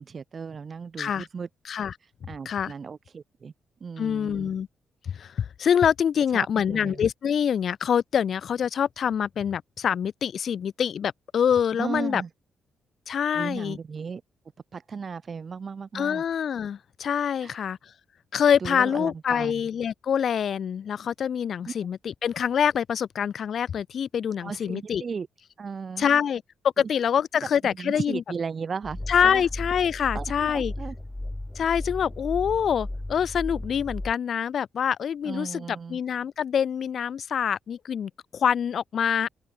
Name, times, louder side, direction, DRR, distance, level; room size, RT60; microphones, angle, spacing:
voice 1, 0.0-1.5 2.2-3.5 3.8-4.5 6.3-7.0 11.8-12.3 13.3-14.2 14.7-16.2 17.4-17.6 18.6-19.6 21.7-21.8 24.4-25.3 25.6-26.2 27.8-29.4 30.1-31.0 35.2-36.0, right 5 dB, 50° right, 1.9 m, -35 dB
voice 2, 4.0-4.7 5.1-12.2 13.1-13.8 15.9-17.8 18.3-25.0 26.0-26.4 26.8-28.2 29.1-30.7 31.5-35.6 35.9-39.3, left 8 dB, 65° left, 1.3 m, -25 dB
sound 1, 28.8-34.1, left 1 dB, 15° left, 7.2 m, -35 dB
supercardioid pair, 55°, 0 cm